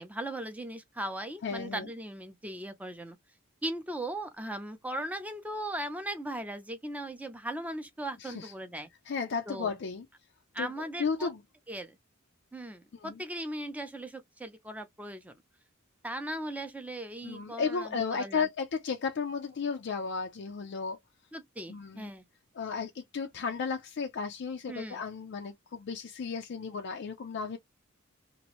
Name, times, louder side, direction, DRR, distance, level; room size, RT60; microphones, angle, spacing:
voice 1, 0.0-3.2 3.6-8.9 9.5-9.7 10.5-11.3 11.7-12.0 12.5-15.3 16.0-18.5 21.3-22.2 24.7-25.0, right 1 dB, 5° right, 0.5 m, -38 dB
voice 2, 1.4-1.9 8.2-8.5 9.1-10.1 10.6-10.7 11.0-11.4 12.9-13.2 17.2-21.0 21.7-22.1 22.5-27.6, left 5 dB, 55° left, 0.4 m, -34 dB
2.9 x 2.5 x 2.9 m
head